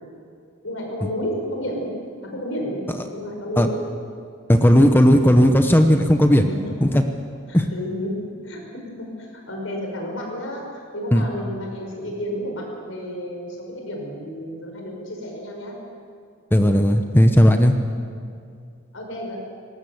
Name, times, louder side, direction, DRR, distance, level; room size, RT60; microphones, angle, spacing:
voice 1, 0.6-1.9 2.2-2.8 3.1-3.8 6.5-6.9 7.5-8.1 8.4-8.6 9.0-15.7 18.9-19.4, equal, 80° left, 0 dB, 5.8 m, -31 dB
voice 2, 4.5-6.4 6.8-7.0 7.5-7.7 11.1-11.3 16.5-17.7, equal, 10° left, 6 dB, 0.9 m, -15 dB
20.0 x 18.5 x 7.9 m, 2.3 s
head